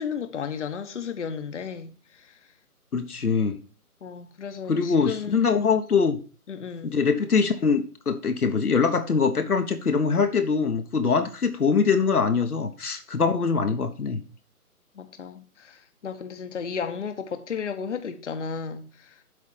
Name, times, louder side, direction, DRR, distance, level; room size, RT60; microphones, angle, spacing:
voice 1, 0.0-2.4 4.0-5.4 6.5-7.0 15.0-19.2, left 6 dB, 50° left, 1.3 m, -34 dB
voice 2, 2.9-3.6 4.7-6.2 6.8-14.2, left 5 dB, 70° left, 1.4 m, -23 dB
8.3 x 4.3 x 7.1 m
figure-of-eight pair, 150°, 46 cm